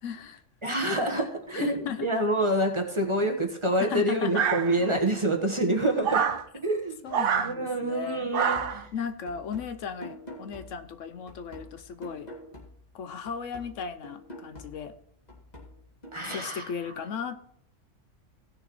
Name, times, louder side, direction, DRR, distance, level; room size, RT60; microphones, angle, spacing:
voice 1, 0.0-0.4 1.1-1.3 1.5-2.1 3.8-4.5 7.0-8.3 8.9-12.3 12.9-14.9 16.3-17.4, left 7 dB, 75° left, 9 dB, 1.0 m, -36 dB
voice 2, 0.6-1.7 2.0-7.0 7.4-8.9 16.1-16.7, right 1 dB, 25° right, 2 dB, 1.2 m, -27 dB
sound 1, 4.3-5.1 6.0-6.4 7.1-7.5 8.3-8.8, right 7 dB, 55° right, 0.7 m, -26 dB
sound 2, 8.5-13.0 13.3-16.5, left 1 dB, 30° left, 2.2 m, -47 dB
17.5 x 6.6 x 3.1 m, 0.69 s
omnidirectional pair, 1.3 m